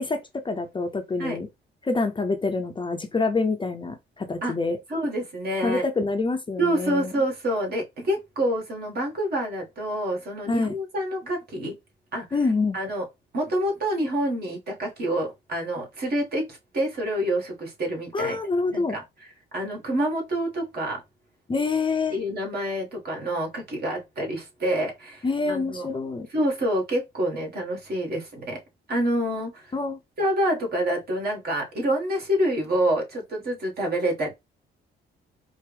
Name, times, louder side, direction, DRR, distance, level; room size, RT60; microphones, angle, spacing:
voice 1, 0.0-1.5 1.8-4.8 5.6-7.1 10.5-10.7 12.3-12.8 18.1-19.0 21.5-22.2 25.2-26.3 29.7-30.0, left 3 dB, 25° left, 0.6 m, -26 dB
voice 2, 4.9-5.8 6.6-11.7 12.1-12.4 12.7-13.0 13.3-18.4 18.7-19.0 19.5-21.0 22.1-25.9 26.3-28.6 28.9-29.7 30.2-34.3, right 1 dB, 50° right, 1.7 m, -27 dB
4.5 x 2.0 x 3.4 m
cardioid pair, 90°, 20 cm